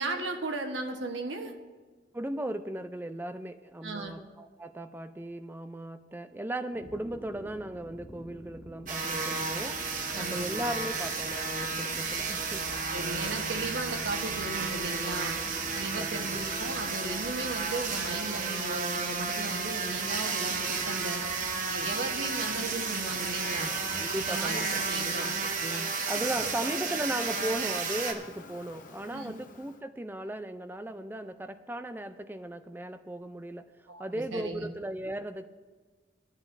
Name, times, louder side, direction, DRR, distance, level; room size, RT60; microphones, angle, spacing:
voice 1, 0.0-1.5 3.8-4.1 10.1-10.5 12.9-15.3 15.7-21.2 21.7-23.7 24.2-25.3 25.6-25.8 26.4-26.5 29.1-29.3 33.9-34.7, right 2 dB, 80° right, 3 dB, 1.1 m, -36 dB
voice 2, 2.1-9.8 10.2-12.7 16.0-16.3 23.9-25.1 26.0-33.7 34.0-35.5, right 1 dB, 10° right, 9 dB, 0.4 m, -37 dB
sound 1, 6.7-24.5, right 1 dB, 15° left, 2.0 m, -48 dB
sound 2, 8.9-28.1, right 4 dB, 45° right, 0.9 m, -32 dB
Fowl, 23.3-29.8, left 3 dB, 45° left, 0.7 m, -46 dB
17.0 x 10.5 x 2.6 m, 1.4 s
head